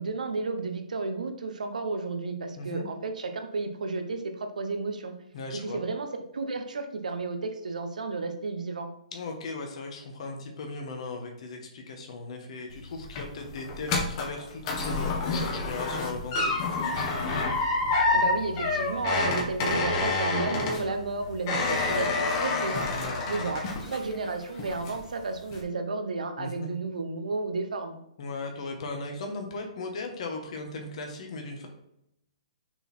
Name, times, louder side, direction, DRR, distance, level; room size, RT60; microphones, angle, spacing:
voice 1, 0.0-5.1 5.5-8.9 18.1-22.9 23.3-28.0, right 3 dB, 85° right, 6 dB, 1.1 m, -32 dB
voice 2, 2.6-2.9 5.3-5.8 9.1-17.1 22.9-23.2 26.4-26.7 28.2-31.7, left 3 dB, 55° left, 2 dB, 1.5 m, -37 dB
sound 1, 12.7-24.3 24.6-25.1 25.5-25.6, left 3 dB, 35° left, 1.5 m, -28 dB
6.7 x 4.1 x 4.5 m, 0.78 s
hypercardioid pair, 145°, 4 cm